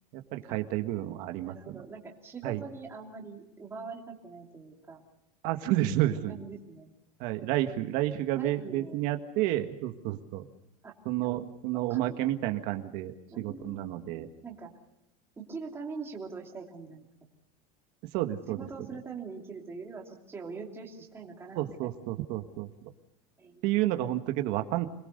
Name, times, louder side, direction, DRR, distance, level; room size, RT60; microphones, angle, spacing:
voice 1, 0.1-1.8 2.4-2.6 5.4-6.4 7.2-10.4 11.1-14.3 18.1-18.6 21.6-22.7 23.6-24.9, right 14 dB, 50° right, 6 dB, 1.8 m, -30 dB
voice 2, 1.4-5.0 5.9-6.9 8.3-9.0 10.8-10.9 11.2-11.4 11.7-12.2 13.3-14.0 14.4-14.7 15.4-17.3 18.5-21.9 23.4-23.6, right 4 dB, 15° right, 0 dB, 3.0 m, -43 dB
26.5 x 21.0 x 6.7 m, 0.85 s
supercardioid pair, 165°, 18 cm